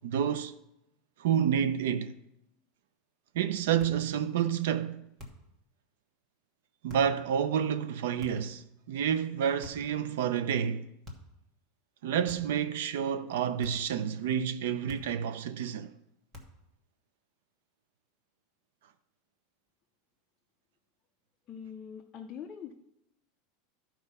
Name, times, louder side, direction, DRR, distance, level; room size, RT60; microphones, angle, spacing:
voice 1, 0.0-0.5 1.2-2.2 3.3-5.0 6.8-10.9 12.0-15.9, right 8 dB, 70° right, 0.5 m, -29 dB
sound 1, 3.8-4.1 5.2-5.6 6.9-7.2 8.2-8.6 9.6-10.0 11.0-11.4 12.3-12.7 13.6-14.0 14.9-15.3 16.3-16.7, left 1 dB, 15° right, 1.2 m, -48 dB
voice 2, 21.5-22.7, left 7 dB, 20° left, 0.5 m, -43 dB
12.5 x 4.4 x 5.4 m
supercardioid pair, 180°, 0 cm